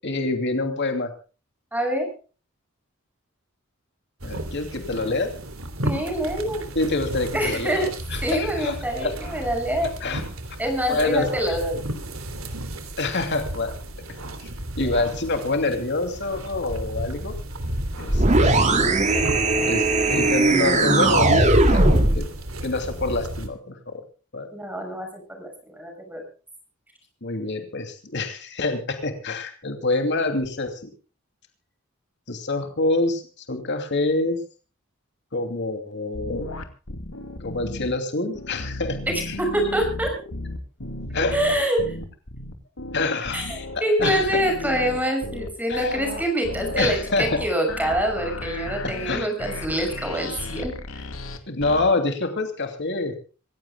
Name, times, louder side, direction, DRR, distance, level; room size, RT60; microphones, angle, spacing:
voice 1, 0.0-1.1 4.2-5.3 6.7-7.8 8.1-8.7 9.0-9.2 9.8-10.2 10.5-10.6 10.9-11.3 13.0-13.7 14.4-14.5 14.8-17.4 18.0-18.9 19.6-24.0 24.3-24.5 27.2-30.9 32.3-34.4 35.3-36.5 37.4-39.0 39.3-39.4 41.1-41.4 42.9-44.3 45.7-45.9 46.7-47.3 48.8-49.3 51.5-53.1, left 2 dB, 55° left, 6 dB, 2.8 m, -26 dB
voice 2, 1.7-2.1 5.8-6.7 7.3-7.9 8.2-9.9 10.6-11.8 14.8-14.9 24.5-26.2 39.4-40.2 41.1-42.0 43.3-51.1, right 1 dB, 10° right, 4 dB, 6.2 m, -25 dB
sound 1, 4.2-23.5, right 1 dB, 75° right, 3.2 m, -34 dB
sound 2, 18.1-22.3, right 2 dB, 35° right, 2.4 m, -18 dB
sound 3, 36.1-37.9 38.3-51.8, left 2 dB, 80° left, 2.6 m, -34 dB
26.5 x 16.0 x 2.3 m, 0.36 s
head